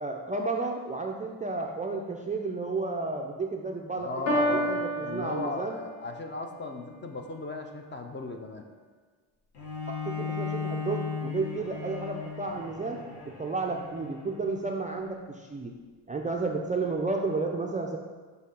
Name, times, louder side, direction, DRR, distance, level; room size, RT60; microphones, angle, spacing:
voice 1, 0.0-5.8 9.9-15.7 16.1-18.0, right 3 dB, 20° right, 1 dB, 0.4 m, -32 dB
voice 2, 3.9-8.6, left 3 dB, 25° left, 4 dB, 0.5 m, -37 dB
Piano, 4.3-6.2, equal, 50° left, 1.6 m, -30 dB
Bowed string instrument, 9.5-14.8, left 5 dB, 70° left, 1.5 m, -36 dB
6.5 x 2.8 x 5.2 m, 1.4 s
cardioid pair, 100°, 42 cm